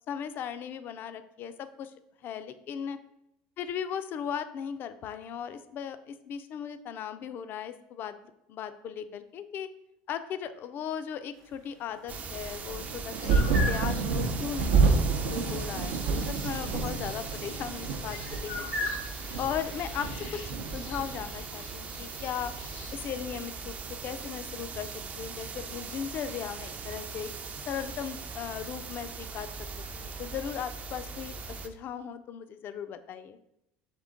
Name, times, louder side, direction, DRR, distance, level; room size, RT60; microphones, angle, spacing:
voice 1, 0.1-1.9 2.2-3.0 3.6-8.1 8.5-9.7 10.1-18.9 19.4-20.4 20.7-22.5 22.9-23.8 24.0-24.9 25.2-27.3 27.7-29.7 30.0-31.3 31.6-33.4, left 8 dB, 50° left, 11 dB, 0.4 m, -37 dB
sound 1, 12.1-31.7, right 4 dB, 35° right, 0.4 m, -40 dB
sound 2, 12.7-21.8 22.0-22.9 23.9-24.0, right 4 dB, 80° right, 0.6 m, -29 dB
sound 3, 13.2-23.0, left 2 dB, 80° left, 0.9 m, -41 dB
3.7 x 3.6 x 3.7 m, 0.82 s
supercardioid pair, 90°, 4 cm